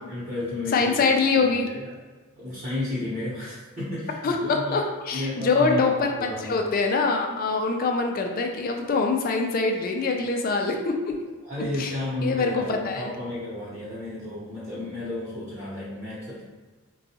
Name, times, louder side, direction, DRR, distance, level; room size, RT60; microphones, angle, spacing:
voice 1, 0.0-1.9 2.4-4.8 5.1-5.8 6.2-6.6 11.4-16.4, left 2 dB, 35° right, -12 dB, 1.0 m, -32 dB
voice 2, 0.7-1.7 4.2-11.1 11.8-11.9 12.2-13.1, left 4 dB, 40° left, 3 dB, 0.3 m, -24 dB
3.9 x 2.3 x 2.8 m, 1.4 s
head